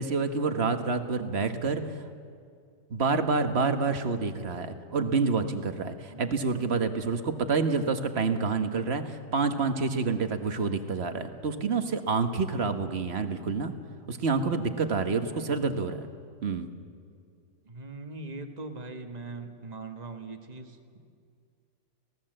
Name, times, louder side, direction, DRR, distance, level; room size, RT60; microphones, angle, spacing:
voice 1, 0.0-1.8 2.9-13.7 14.1-16.1 16.4-16.7, right 4 dB, 40° right, 7 dB, 1.4 m, -28 dB
voice 2, 15.3-15.6 17.6-21.0, right 3 dB, 25° right, 5 dB, 1.5 m, -41 dB
25.0 x 17.0 x 7.7 m, 2.2 s
omnidirectional pair, 1.8 m